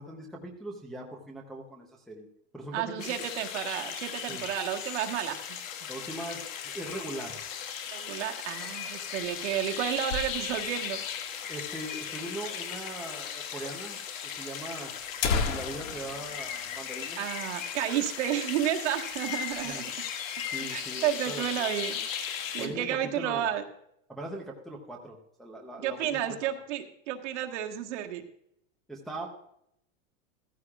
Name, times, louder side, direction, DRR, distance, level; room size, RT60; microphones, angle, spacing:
voice 1, 0.0-2.3 2.5-3.3 4.3-4.5 5.9-7.4 11.5-14.0 14.4-14.9 15.4-17.2 19.6-19.9 20.5-21.7 22.6-23.6 24.1-26.2 28.9-29.3, right 1 dB, ahead, -2 dB, 0.7 m, -40 dB
voice 2, 2.7-5.6 7.9-11.0 17.2-19.9 20.7-23.6 25.8-28.2, right 11 dB, 60° right, 4 dB, 1.6 m, -32 dB
sound 1, 3.0-22.7, left 8 dB, 75° left, 2.0 m, -37 dB
sound 2, 9.0-10.8 11.2-11.3 11.5-11.6 12.2-12.3 13.3-13.4 13.7-13.8 14.5-14.6 15.0-17.6 17.9-18.0 18.5-18.7 19.1-19.7, left 4 dB, 60° left, 1.8 m, -34 dB
14.5 x 14.0 x 2.4 m, 0.74 s
supercardioid pair, 170°, 40 cm